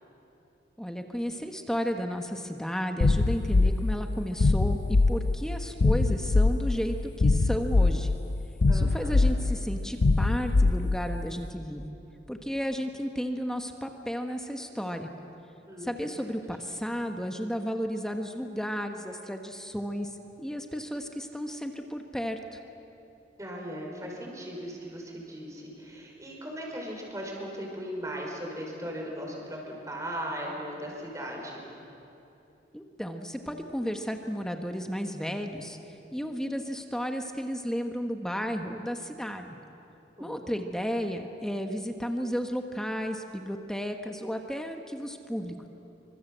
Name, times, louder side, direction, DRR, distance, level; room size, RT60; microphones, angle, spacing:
voice 1, 0.8-8.1 8.7-11.9 12.3-15.1 15.8-22.6 32.7-35.8 36.1-39.6 40.2-45.7, equal, 5° left, 4 dB, 1.2 m, -33 dB
sound 1, 3.0-11.3, left 3 dB, 70° left, 0.6 m, -24 dB
voice 2, 8.7-9.3 15.7-16.1 23.4-31.6 40.2-40.5, equal, 15° right, -1 dB, 5.3 m, -38 dB
28.0 x 25.0 x 8.0 m, 2.9 s
head